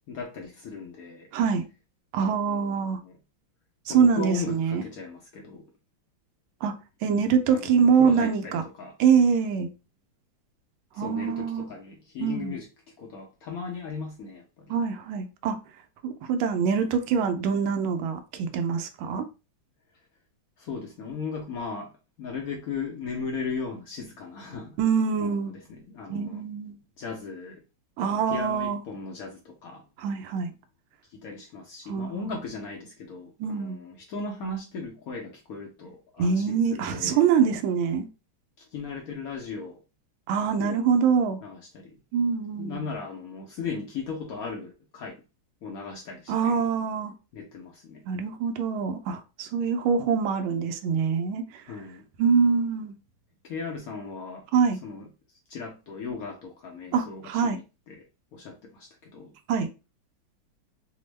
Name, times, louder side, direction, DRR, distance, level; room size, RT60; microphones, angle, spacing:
voice 1, 0.1-1.3 2.2-3.1 3.9-5.7 7.5-9.0 10.9-12.7 13.0-14.8 20.6-21.9 22.2-24.8 25.2-26.4 27.0-27.6 28.1-29.8 31.1-37.2 38.6-39.8 40.6-40.8 41.4-42.0 42.6-45.2 45.6-46.6 47.3-48.0 51.7-52.1 53.4-54.5 54.8-55.1 55.5-58.0 58.3-59.3, left 4 dB, 75° left, 0.8 m, -37 dB
voice 2, 1.3-1.7 2.1-3.0 3.9-4.8 6.6-6.7 7.0-8.6 9.0-9.7 11.0-11.7 12.2-12.6 14.7-15.6 16.0-19.2 24.8-25.5 26.1-26.8 28.0-28.8 30.0-30.5 31.9-32.2 33.4-33.8 36.2-38.1 40.3-41.4 42.1-42.9 46.3-47.1 48.1-51.5 52.2-52.9 54.5-54.8 56.9-57.6 59.5-59.7, right 6 dB, 85° right, 1.4 m, -24 dB
3.5 x 2.0 x 3.1 m
omnidirectional pair, 2.2 m